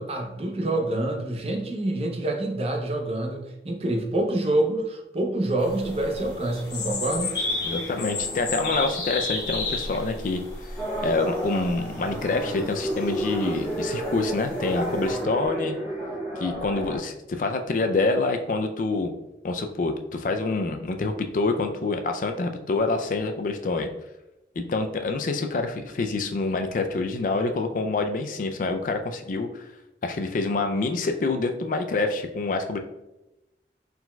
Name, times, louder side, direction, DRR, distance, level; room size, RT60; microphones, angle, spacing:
voice 1, 0.0-7.3, right 1 dB, 35° right, 2 dB, 0.6 m, -27 dB
sound 1, 5.6-15.2, left 3 dB, 70° left, 1.4 m, -34 dB
voice 2, 7.6-10.4 11.0-15.7 16.4-19.1 19.4-23.9 24.6-29.7 30.0-32.8, left 3 dB, 45° left, 6 dB, 0.3 m, -26 dB
sound 2, 10.8-17.0, right 1 dB, 10° right, 1.4 m, -31 dB
4.5 x 3.9 x 2.2 m, 0.94 s
head